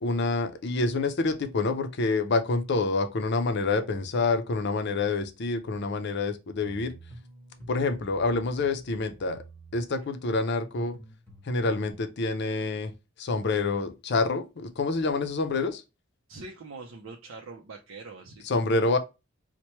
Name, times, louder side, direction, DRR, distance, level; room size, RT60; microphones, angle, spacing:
voice 1, 0.0-6.9 7.7-9.4 9.7-11.0 11.4-12.9 13.2-15.8 18.4-19.0, left 3 dB, 55° left, 0.5 m, -27 dB
sound 1, 6.6-11.9, right 1 dB, 10° left, 1.0 m, -49 dB
voice 2, 16.3-18.5, right 3 dB, 85° right, 0.5 m, -43 dB
4.3 x 2.1 x 3.0 m
head